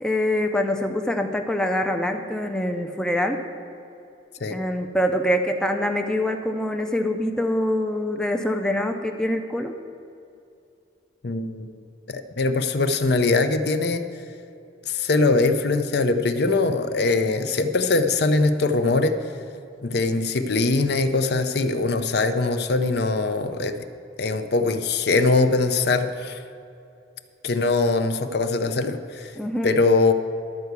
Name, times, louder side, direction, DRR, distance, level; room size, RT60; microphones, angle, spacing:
voice 1, 0.0-3.4 4.5-9.7 29.4-29.7, left 1 dB, 5° left, 4 dB, 0.4 m, -24 dB
voice 2, 11.2-11.7 12.1-14.0 14.9-19.1 19.8-23.8 24.2-26.4 27.4-29.3 29.6-30.1, left 3 dB, 60° left, 9 dB, 0.6 m, -22 dB
12.0 x 4.7 x 8.1 m, 2.6 s
head